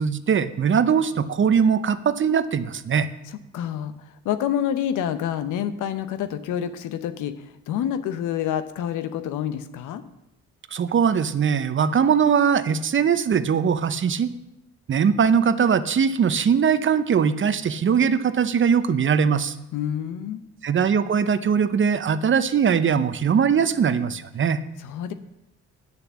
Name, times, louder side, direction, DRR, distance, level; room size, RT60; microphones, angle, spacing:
voice 1, 0.0-3.1 10.7-14.3 14.9-19.5 20.6-24.6, right 7 dB, 40° right, 12 dB, 0.7 m, -21 dB
voice 2, 3.5-10.0 19.7-20.4 24.8-25.1, left 10 dB, 85° left, 11 dB, 0.9 m, -28 dB
9.9 x 6.8 x 7.3 m, 0.89 s
cardioid pair, 90°, 30 cm